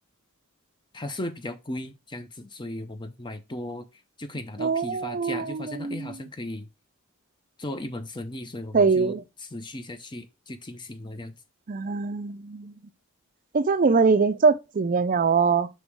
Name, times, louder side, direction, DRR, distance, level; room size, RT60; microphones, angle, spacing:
voice 1, 0.9-3.9 4.2-6.7 7.6-11.3, left 1 dB, 20° left, 0.6 m, -36 dB
voice 2, 4.6-6.2 8.7-9.2 11.7-12.7 13.5-15.7, right 4 dB, 40° right, 0.4 m, -23 dB
7.1 x 3.0 x 4.7 m
head